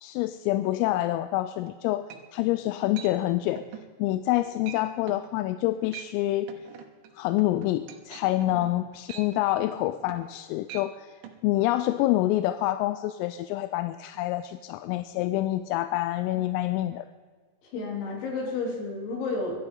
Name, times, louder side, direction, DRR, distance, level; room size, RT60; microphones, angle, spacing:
voice 1, 0.0-2.0 2.3-3.6 4.0-6.5 7.2-11.1 11.4-17.1, left 15 dB, 90° left, 11 dB, 3.2 m, -27 dB
sound 1, 1.7-1.8 2.1-2.5 3.0-3.2 3.6-3.9 4.2-4.4 4.7-4.8 5.1-5.3 5.8-6.2 6.5-10.4 10.7-10.9 11.2-11.4, right 10 dB, 75° right, 3.3 m, -43 dB
voice 2, 17.6-19.6, left 3 dB, 65° left, -2 dB, 5.6 m, -31 dB
23.0 x 11.5 x 3.8 m, 1.5 s
omnidirectional pair, 5.9 m